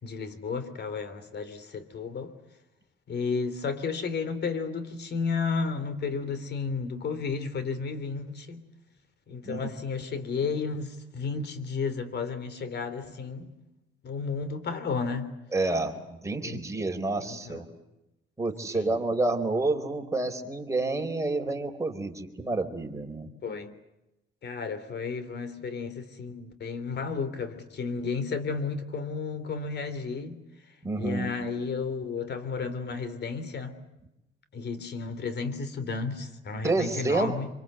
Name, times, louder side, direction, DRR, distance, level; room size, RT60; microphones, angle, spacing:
voice 1, 0.0-2.3 3.1-8.6 9.3-13.5 14.0-15.3 16.4-16.6 17.3-17.6 18.7-19.0 23.4-23.7 24.4-30.4 30.9-33.8 34.5-37.5, left 5 dB, 60° left, 3.3 m, -32 dB
voice 2, 15.5-17.7 18.4-23.3 30.8-31.3 36.6-37.3, right 2 dB, 15° right, 4.3 m, -29 dB
26.0 x 25.0 x 8.0 m
cardioid pair, 90°, 20 cm